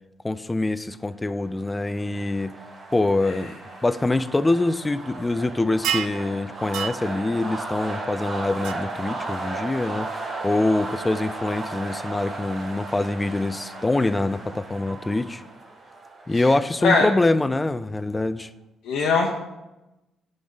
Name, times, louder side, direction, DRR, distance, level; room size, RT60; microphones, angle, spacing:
voice 1, 0.2-2.6 2.9-3.5 3.8-15.4 16.3-18.5, left 2 dB, 15° left, 14 dB, 0.4 m, -24 dB
sound 1, 1.4-18.0, right 3 dB, 40° right, 1.6 m, -36 dB
sound 2, 5.8-6.2 6.7-7.0 8.6-8.7, right 9 dB, 85° right, 0.4 m, -26 dB
voice 2, 18.8-19.4, left 4 dB, 80° left, 0 dB, 0.8 m, -21 dB
10.5 x 3.9 x 3.8 m, 1.0 s
cardioid pair, 90°, 0 cm